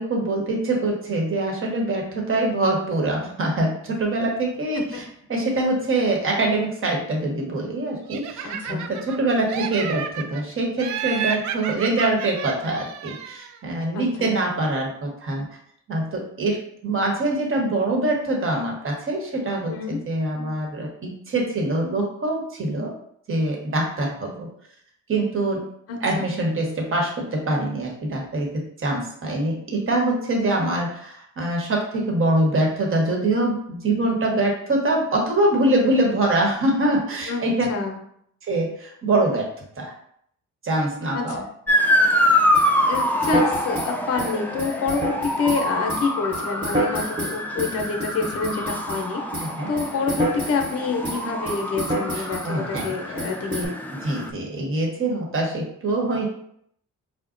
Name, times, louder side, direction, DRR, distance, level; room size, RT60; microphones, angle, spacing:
voice 1, 0.0-5.0 5.3-15.4 15.9-22.9 23.3-24.5 25.1-25.7 26.0-37.7 38.4-39.5 39.8-39.9 40.6-41.4 49.4-49.7 52.1-52.9 54.0-56.3, right 2 dB, 45° right, 0 dB, 1.1 m, -24 dB
Laughter, 8.1-9.2 9.5-10.4 10.8-13.6, right 8 dB, 70° right, 0.4 m, -31 dB
voice 2, 8.4-8.9 13.9-14.4 19.6-20.0 25.9-26.3 37.3-38.0 41.1-41.4 42.9-49.2 49.7-53.8, left 4 dB, 50° left, 2 dB, 0.7 m, -27 dB
Motor vehicle (road) / Siren, 41.7-54.3, left 1 dB, 5° left, 0.3 m, -25 dB
sound 1, 42.5-49.1 49.3-50.7 51.0-52.5 52.7-52.9 53.2-53.7, right 1 dB, 15° right, 1.1 m, -28 dB
4.9 x 2.1 x 2.5 m, 0.68 s
cardioid pair, 90°, 30 cm